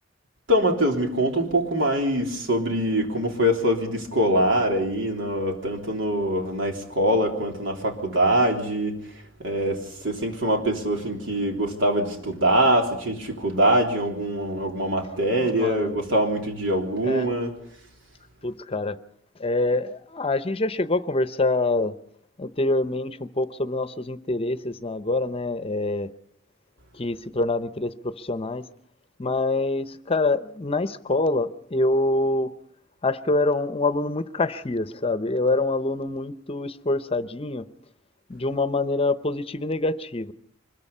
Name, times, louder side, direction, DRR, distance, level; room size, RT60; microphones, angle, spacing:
voice 1, 0.5-9.0 9.4-17.5, right 1 dB, 85° right, 3.6 m, -23 dB
voice 2, 15.3-15.9 17.0-17.3 18.4-19.0 19.4-21.9 22.4-26.1 26.9-28.7 29.2-32.5 33.0-37.6 38.3-40.3, left 2 dB, 30° left, 0.8 m, -25 dB
24.5 x 21.5 x 5.5 m
head